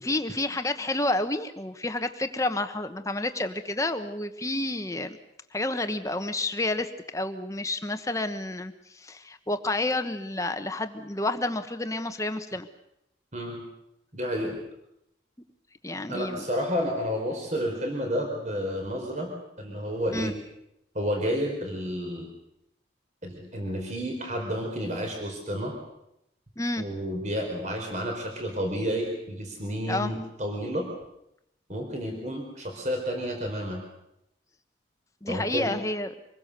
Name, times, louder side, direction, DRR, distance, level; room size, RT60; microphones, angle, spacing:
voice 1, 0.0-5.2 5.5-12.7 15.8-16.5 20.1-20.3 26.6-26.8 29.8-30.1 35.2-36.1, left 2 dB, 15° left, 8 dB, 1.2 m, -30 dB
voice 2, 14.1-14.6 16.1-19.3 19.6-20.4 20.9-22.3 23.2-25.7 26.8-30.9 31.7-33.8 35.3-35.8, equal, 40° right, 2 dB, 4.6 m, -30 dB
25.5 x 21.5 x 6.8 m, 0.82 s
head